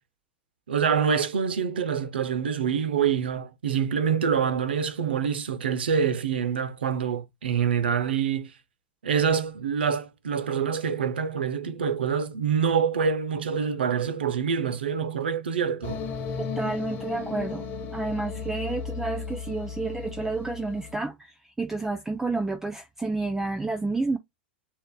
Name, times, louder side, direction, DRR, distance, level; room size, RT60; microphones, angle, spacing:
voice 1, 0.7-8.5 9.0-16.0, right 7 dB, 85° right, 0.7 m, -26 dB
sound 1, 15.8-21.0, left 5 dB, 35° left, 1.1 m, -35 dB
voice 2, 16.4-24.2, right 3 dB, 10° right, 0.4 m, -30 dB
6.7 x 2.5 x 2.2 m
hypercardioid pair, 115°, 5 cm